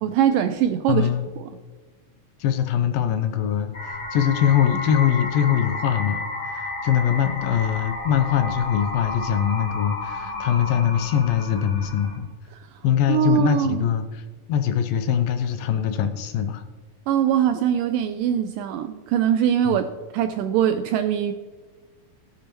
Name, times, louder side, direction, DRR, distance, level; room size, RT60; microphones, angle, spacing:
voice 1, 0.0-1.1 12.5-12.8 13.1-13.8 17.1-19.9 20.1-21.3, right 10 dB, 85° right, 8 dB, 2.0 m, -22 dB
voice 2, 0.9-1.3 2.4-12.3 12.8-14.2 14.5-16.6 19.7-19.8, left 9 dB, 80° left, 8 dB, 2.3 m, -22 dB
sound 1, 3.7-12.2, left 3 dB, 30° left, 2.8 m, -32 dB
17.5 x 6.8 x 3.0 m, 1.4 s
omnidirectional pair, 4.3 m